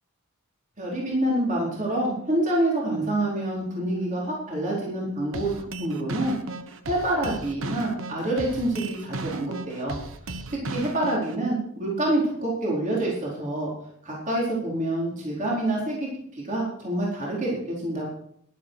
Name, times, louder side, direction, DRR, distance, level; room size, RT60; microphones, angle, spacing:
voice 1, 0.8-5.5 5.8-6.4 6.9-10.0 10.5-13.7 14.0-18.1, right 1 dB, 35° right, -4 dB, 4.3 m, -27 dB
sound 1, 5.3-11.4, right 3 dB, 65° right, 1.3 m, -35 dB
12.0 x 11.5 x 4.7 m, 0.67 s
head